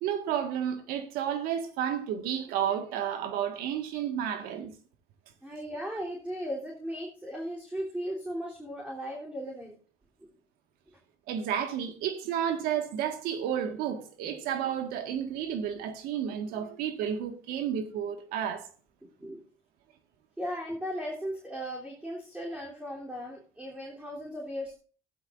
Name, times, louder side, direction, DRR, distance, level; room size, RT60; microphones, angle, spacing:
voice 1, 0.0-4.7 11.3-18.6, right 9 dB, 80° right, 1.8 m, -31 dB
voice 2, 5.4-9.8 19.2-19.4 20.4-24.7, equal, 10° right, 3.4 m, -37 dB
15.0 x 11.5 x 2.6 m
supercardioid pair, 85°, 15 cm